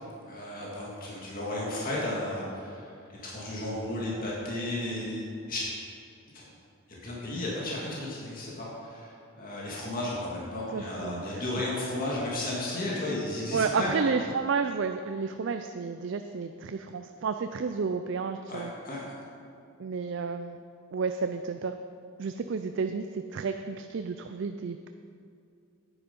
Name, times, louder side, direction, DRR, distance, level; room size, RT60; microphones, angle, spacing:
voice 1, 0.3-5.7 6.3-6.4 6.9-14.1 18.5-19.0, left 1 dB, 40° left, -5 dB, 2.0 m, -34 dB
voice 2, 10.7-11.4 13.5-18.7 19.8-20.6 20.9-21.7 22.2-24.9, right 5 dB, 55° right, 8 dB, 0.4 m, -31 dB
9.8 x 9.5 x 5.4 m, 2.4 s
head